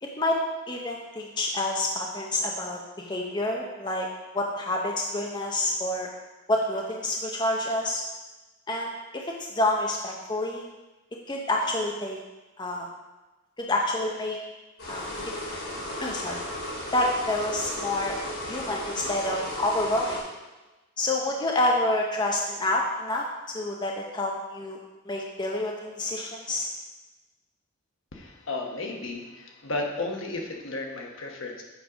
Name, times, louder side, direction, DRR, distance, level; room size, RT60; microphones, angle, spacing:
voice 1, 0.7-4.1 4.3-6.1 6.5-8.0 8.7-10.7 11.3-12.2 12.6-12.9 13.6-14.4 14.9-15.3 16.0-16.4 16.9-18.2 18.5-20.2 21.0-23.2 23.5-24.8 25.1-26.7, left 1 dB, 20° left, 0 dB, 0.6 m, -28 dB
sound 1, 14.8-20.2, left 1 dB, 80° left, 2.7 m, -35 dB
voice 2, 28.1-31.6, left 2 dB, 65° left, 1 dB, 1.1 m, -33 dB
7.2 x 5.3 x 4.9 m, 1.1 s
head